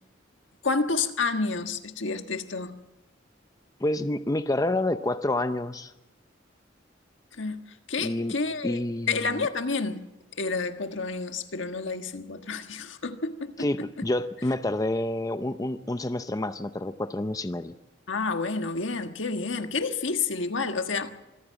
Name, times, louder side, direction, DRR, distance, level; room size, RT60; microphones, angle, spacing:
voice 1, 0.6-2.8 7.4-8.8 9.1-13.7 14.0-14.1 18.1-21.1, left 4 dB, 80° left, 1.5 m, -30 dB
voice 2, 3.8-5.9 8.0-8.3 8.6-9.4 13.6-17.7, left 1 dB, 20° left, 0.6 m, -28 dB
25.5 x 15.0 x 7.5 m
head